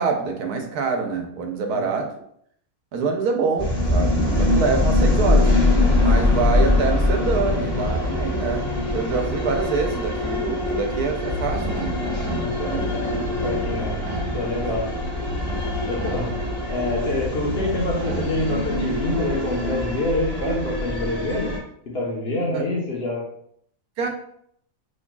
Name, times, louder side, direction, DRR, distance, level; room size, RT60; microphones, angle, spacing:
voice 1, 0.0-2.1 2.9-5.5 6.0-13.1 22.5-22.6 24.0-24.1, right 4 dB, 80° right, 4 dB, 1.3 m, -26 dB
sound 1, 3.6-21.6, left 2 dB, 25° left, 1.7 m, -23 dB
sound 2, 11.2-18.9, left 1 dB, 55° right, 1.0 m, -33 dB
voice 2, 13.4-14.0 14.3-14.9 15.9-16.3 16.7-21.5 21.9-23.2, left 1 dB, 45° left, -3 dB, 1.2 m, -26 dB
6.3 x 3.1 x 2.3 m, 0.68 s
omnidirectional pair, 1.6 m